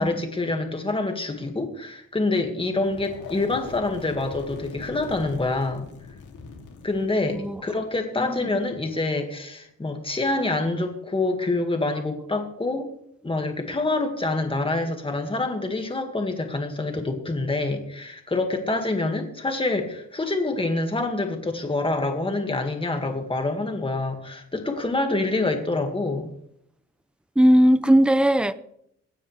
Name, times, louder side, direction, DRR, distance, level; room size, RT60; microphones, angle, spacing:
voice 1, 0.0-5.9 6.8-12.9 13.2-26.3, left 2 dB, 20° left, 4 dB, 2.1 m, -26 dB
sound 1, 2.8-8.7, left 5 dB, 85° left, 3.0 m, -42 dB
voice 2, 7.3-7.8 8.2-8.6 27.4-28.5, equal, 5° right, 14 dB, 0.6 m, -19 dB
25.0 x 9.5 x 3.4 m, 0.74 s
wide cardioid pair, 130°, 30 cm